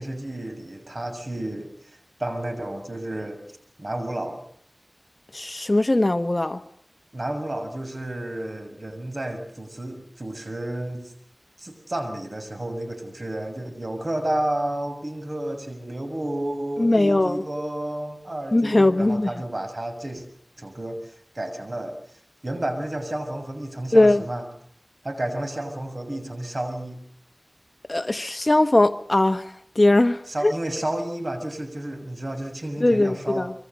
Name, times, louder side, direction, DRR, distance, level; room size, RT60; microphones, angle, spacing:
voice 1, 0.0-3.4 3.8-4.4 7.1-11.1 11.6-20.3 20.6-21.9 22.4-24.4 25.0-27.0 30.3-33.5, right 1 dB, 50° right, 6.6 m, -31 dB
voice 2, 5.3-6.6 16.8-17.4 18.5-19.3 23.9-24.2 27.9-30.5 32.8-33.5, left 2 dB, 40° left, 1.3 m, -20 dB
26.0 x 24.0 x 6.8 m
wide cardioid pair, 55°, 0 cm